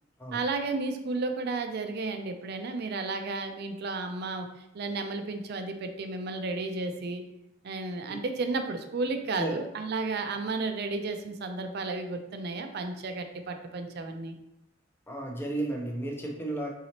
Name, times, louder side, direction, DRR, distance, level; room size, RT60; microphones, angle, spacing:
voice 1, 0.3-4.5 4.7-7.2 7.6-14.4, right 3 dB, 55° right, 6 dB, 0.4 m, -33 dB
voice 2, 15.1-16.7, right 1 dB, 10° left, 0 dB, 0.5 m, -33 dB
4.0 x 2.8 x 2.9 m, 0.88 s
head